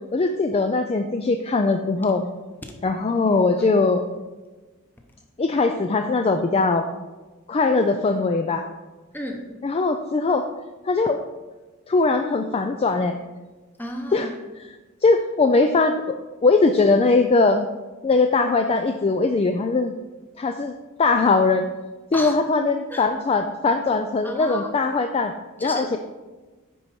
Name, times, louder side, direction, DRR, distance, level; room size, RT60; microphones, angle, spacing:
voice 1, 0.1-2.3 2.8-4.1 5.4-6.9 7.5-8.6 9.6-10.4 10.8-11.2 11.9-13.2 14.1-14.3 14.6-14.8 15.0-16.2 16.4-17.7 18.0-19.9 20.4-20.7 21.0-21.7 22.1-25.3 25.6-26.0, left 3 dB, 25° left, 6 dB, 0.3 m, -20 dB
voice 2, 9.1-9.4 13.8-14.3 22.1-22.3 22.9-23.1 24.2-24.7 25.6-25.9, left 1 dB, 10° left, 2 dB, 0.9 m, -32 dB
9.9 x 4.5 x 4.3 m, 1.2 s
head